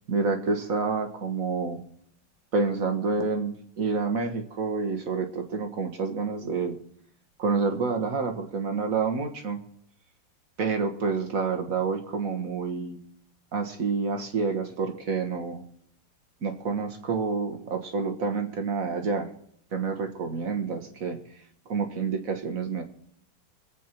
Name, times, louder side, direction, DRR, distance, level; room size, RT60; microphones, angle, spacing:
voice 1, 0.1-1.8 2.5-6.8 7.4-9.6 10.6-13.0 13.5-15.6 16.4-19.3 19.7-21.2 21.7-22.8, right 4 dB, 50° right, 5 dB, 1.8 m, -28 dB
23.5 x 8.4 x 4.5 m, 0.69 s
omnidirectional pair, 2.0 m